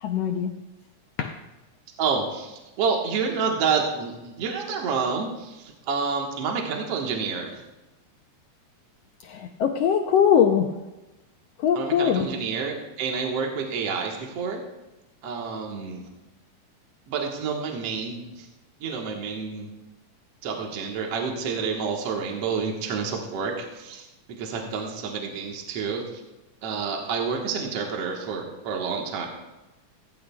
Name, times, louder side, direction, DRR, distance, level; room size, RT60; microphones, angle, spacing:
voice 1, 0.0-0.5 1.2-1.4 9.2-10.7 11.6-12.3, left 8 dB, 80° left, 4 dB, 1.4 m, -22 dB
voice 2, 2.0-7.6 11.8-14.6 15.2-16.0 17.1-18.5 18.8-19.7 20.4-26.0 26.6-29.3, right 5 dB, 60° right, 1 dB, 2.2 m, -29 dB
18.0 x 15.0 x 2.3 m, 1.0 s
omnidirectional pair, 3.6 m